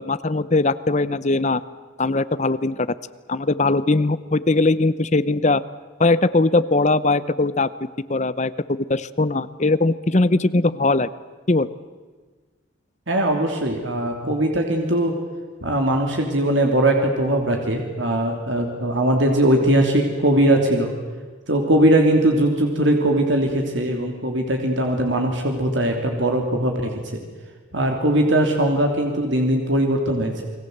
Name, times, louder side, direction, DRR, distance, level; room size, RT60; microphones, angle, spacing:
voice 1, 0.0-1.6 2.0-2.9 3.3-5.6 6.0-11.1 11.5-11.7, left 2 dB, 35° left, 15 dB, 0.8 m, -20 dB
voice 2, 13.1-15.1 15.6-20.9 21.5-27.2 27.7-30.4, right 1 dB, 70° right, 2 dB, 3.1 m, -20 dB
29.5 x 21.0 x 8.0 m, 1.4 s
head